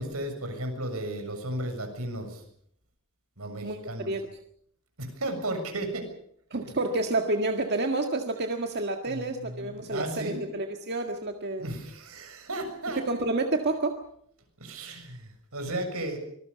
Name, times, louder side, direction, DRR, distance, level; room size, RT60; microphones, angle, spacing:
voice 1, 0.0-2.4 3.4-4.1 5.0-6.1 9.1-10.5 11.6-13.0 14.6-16.2, right 1 dB, 80° right, 5 dB, 7.0 m, -34 dB
voice 2, 3.6-4.2 6.5-11.7 12.9-14.0, right 2 dB, 50° right, 4 dB, 1.8 m, -29 dB
25.0 x 20.5 x 7.0 m, 0.67 s
head